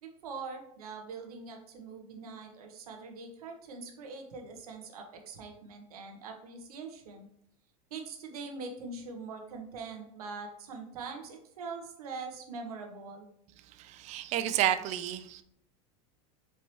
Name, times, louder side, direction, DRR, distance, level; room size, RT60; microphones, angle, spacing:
voice 1, 0.0-7.3 7.9-13.3, right 4 dB, 90° right, 4 dB, 0.9 m, -43 dB
voice 2, 13.9-15.4, right 11 dB, 40° right, 10 dB, 0.4 m, -30 dB
4.4 x 3.0 x 3.0 m, 0.70 s
supercardioid pair, 115°, 19 cm